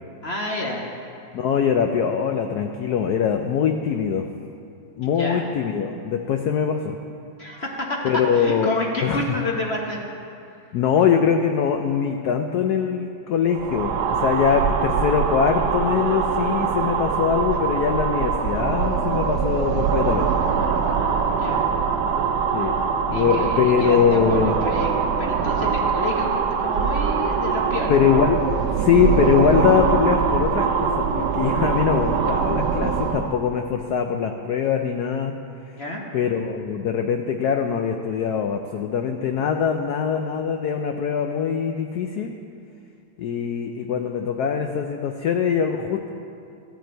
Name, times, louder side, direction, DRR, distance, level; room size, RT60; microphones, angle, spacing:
voice 1, 0.2-0.8 5.0-5.5 7.4-10.0 21.3-21.6 23.1-28.0 35.8-36.0, left 1 dB, 45° left, -1 dB, 0.9 m, -29 dB
voice 2, 1.3-4.3 5.0-7.0 8.0-8.7 9.0-9.2 10.7-20.4 22.5-24.6 27.9-35.4 36.1-42.3 43.2-46.1, left 7 dB, 80° left, 5 dB, 0.8 m, -22 dB
sound 1, 13.5-33.4, right 6 dB, 70° right, 1.1 m, -23 dB
14.0 x 9.3 x 4.5 m, 2.6 s
omnidirectional pair, 2.3 m